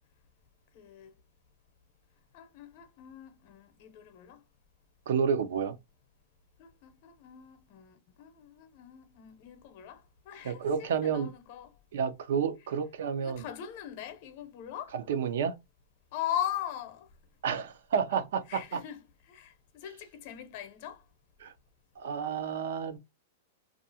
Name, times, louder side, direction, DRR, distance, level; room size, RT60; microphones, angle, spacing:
voice 1, 0.7-1.1 2.3-4.4 6.6-11.7 13.2-15.0 16.1-17.1 18.5-21.0, left 10 dB, 50° left, 0.7 m, -40 dB
voice 2, 5.1-5.7 10.4-11.3 11.9-13.5 14.9-15.5 17.4-18.8 21.4-21.5 22.0-23.0, right 7 dB, 75° right, 0.6 m, -30 dB
2.4 x 2.4 x 2.7 m
hypercardioid pair, 140°, 0 cm